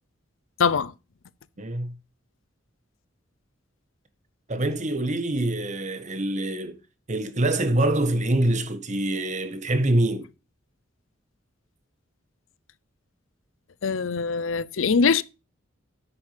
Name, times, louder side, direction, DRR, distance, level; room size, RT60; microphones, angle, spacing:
voice 1, 0.6-0.9 13.8-15.2, left 5 dB, 80° left, 0.6 m, -22 dB
voice 2, 1.6-2.0 4.5-6.8 7.1-10.3, right 1 dB, 40° right, 1.4 m, -25 dB
9.9 x 8.2 x 3.3 m
head